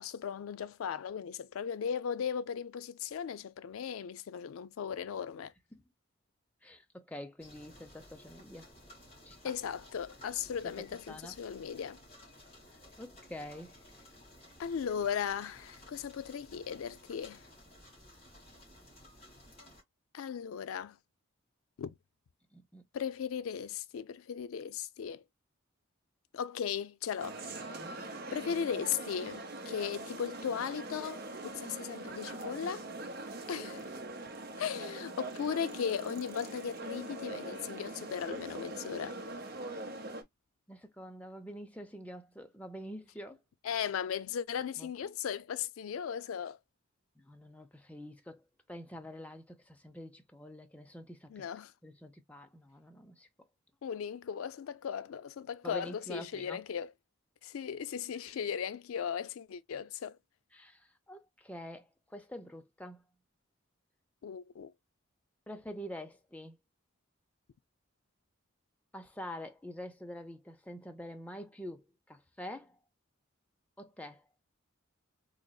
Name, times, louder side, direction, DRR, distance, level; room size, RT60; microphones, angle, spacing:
voice 1, 0.0-5.5 9.4-12.0 14.6-17.4 20.1-21.0 21.8-21.9 22.9-25.2 26.3-27.4 28.3-32.9 33.5-33.9 34.6-39.2 43.6-46.6 51.3-51.7 53.8-56.9 57.4-60.2 64.2-64.7, left 7 dB, 80° left, 0.4 m, -37 dB
voice 2, 6.6-8.7 9.2-9.5 10.6-10.7 11.1-11.4 13.0-13.7 22.5-22.9 27.7-28.1 32.0-32.1 33.3-33.4 40.7-43.4 44.8-44.9 47.2-51.4 51.8-53.3 55.6-56.6 60.5-63.0 65.5-66.6 68.9-72.8 73.8-74.2, equal, 5° left, 0.5 m, -46 dB
sound 1, 7.4-19.8, left 1 dB, 30° left, 2.1 m, -56 dB
sound 2, 27.2-40.2, right 2 dB, 45° right, 0.8 m, -43 dB
3.9 x 3.0 x 2.2 m
head